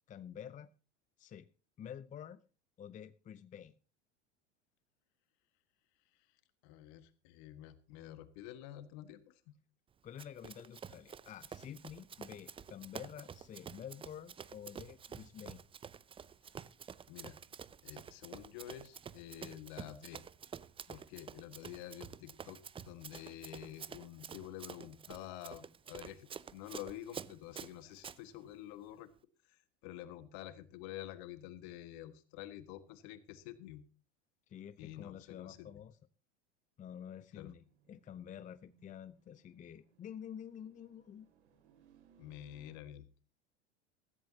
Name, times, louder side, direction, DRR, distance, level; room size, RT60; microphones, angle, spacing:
voice 1, 0.1-0.7 1.2-1.5 1.8-2.4 2.8-3.7 10.0-15.6 34.5-35.9 36.8-41.3, left 9 dB, 20° left, 14 dB, 0.6 m, -49 dB
voice 2, 6.6-9.5 17.1-17.4 17.8-20.2 20.9-29.1 29.5-33.8 34.8-35.7 37.3-37.5 42.2-43.1, left 12 dB, 55° left, 11 dB, 1.7 m, -49 dB
Run, 10.2-28.2, right 7 dB, 15° right, 0.5 m, -49 dB
sound 1, 37.6-42.8, right 4 dB, 75° right, 2.6 m, -68 dB
16.0 x 14.5 x 2.9 m, 0.35 s
hypercardioid pair, 90°, 34 cm